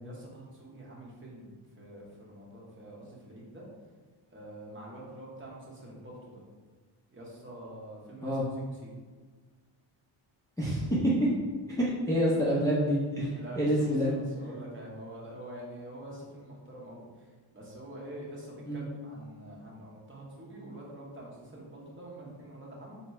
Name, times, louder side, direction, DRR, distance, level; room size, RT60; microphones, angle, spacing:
voice 1, 0.0-1.5 1.8-3.6 4.3-6.4 7.1-8.4 8.7-8.9 13.3-23.0, right 1 dB, 25° right, -4 dB, 1.0 m, -46 dB
voice 2, 10.6-11.1 11.8-14.1 18.7-18.8, equal, 5° left, -8 dB, 0.5 m, -27 dB
4.1 x 2.1 x 4.3 m, 1.4 s
cardioid pair, 115°, 48 cm